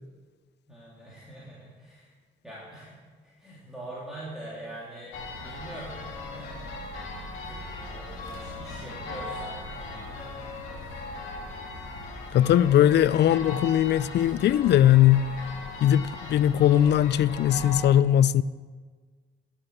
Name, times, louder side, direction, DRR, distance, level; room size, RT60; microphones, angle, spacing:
voice 1, 0.7-2.1 2.4-6.8 7.2-10.4 10.8-11.0 13.0-13.5, right 1 dB, ahead, 2.8 m, -44 dB
sound 1, 5.1-17.8, left 2 dB, 85° left, 1.9 m, -38 dB
voice 2, 12.3-15.3 15.8-18.4, left 11 dB, 60° left, 0.4 m, -20 dB
11.0 x 7.0 x 6.8 m
cardioid pair, 90°, 20 cm